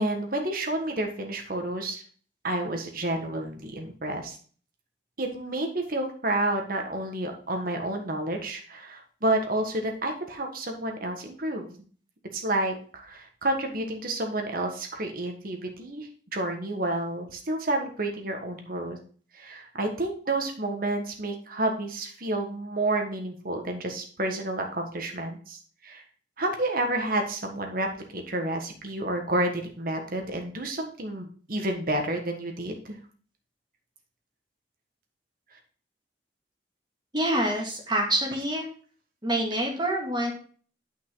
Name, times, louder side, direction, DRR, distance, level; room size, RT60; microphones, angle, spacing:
voice 1, 0.0-2.0 2.4-4.4 5.2-11.8 12.3-19.0 19.3-26.0 26.4-33.0, right 1 dB, 55° right, 3 dB, 1.6 m, -30 dB
voice 2, 37.1-38.6 39.2-40.3, right 1 dB, 25° right, -1 dB, 2.4 m, -26 dB
9.3 x 5.6 x 3.9 m, 0.42 s
head